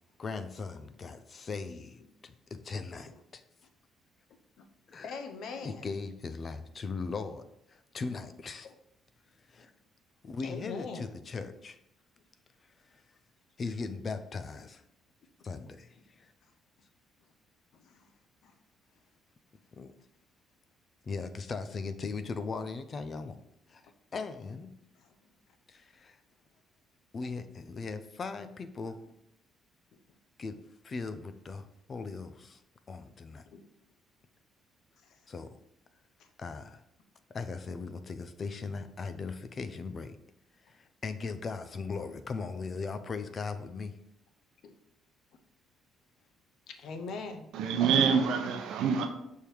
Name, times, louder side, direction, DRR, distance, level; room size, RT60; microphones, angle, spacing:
voice 1, 0.2-3.4 4.9-5.1 5.6-8.7 9.5-9.7 10.2-11.8 12.9-13.0 13.6-14.8 15.4-16.3 19.7-19.9 21.0-23.4 23.7-23.8 24.1-24.7 25.7-26.2 27.1-29.0 30.4-30.6 30.8-32.6 32.9-33.4 35.3-35.6 36.4-36.8 37.3-40.2 40.6-44.0, left 4 dB, 35° left, 0.5 m, -39 dB
voice 2, 5.0-5.8 8.6-8.7 10.4-11.1 17.8-18.1 18.4-18.5 25.0-25.1 33.5-33.6 35.1-35.2 44.6-44.7 46.7-47.5, left 4 dB, 70° left, 0.8 m, -41 dB
voice 3, 47.5-49.1, right 6 dB, 80° right, 0.8 m, -26 dB
6.4 x 3.6 x 4.5 m
cardioid pair, 115°, 0 cm